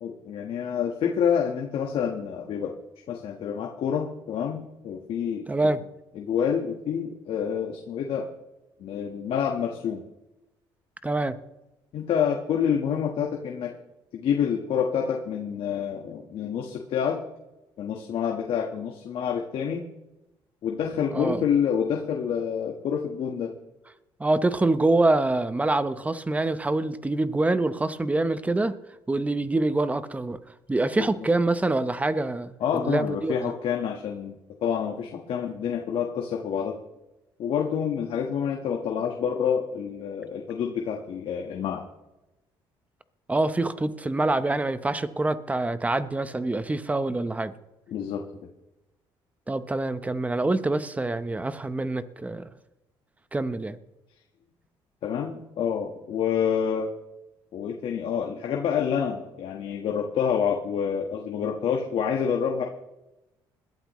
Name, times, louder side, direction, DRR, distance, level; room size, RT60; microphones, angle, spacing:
voice 1, 0.0-2.7 3.1-5.7 6.1-8.3 8.8-10.0 11.9-13.7 14.1-17.2 17.8-19.8 20.6-23.5 31.0-31.1 32.6-36.7 37.4-41.8 47.9-48.2 55.0-56.9 57.5-62.6, left 7 dB, 65° left, 2 dB, 1.5 m, -28 dB
voice 2, 5.5-5.8 11.0-11.4 21.1-21.4 24.2-28.7 29.1-30.4 30.7-33.5 43.3-47.5 49.5-52.5 53.3-53.8, right 2 dB, 15° right, 12 dB, 0.9 m, -25 dB
21.0 x 12.0 x 3.1 m, 0.95 s
cardioid pair, 95°, 10 cm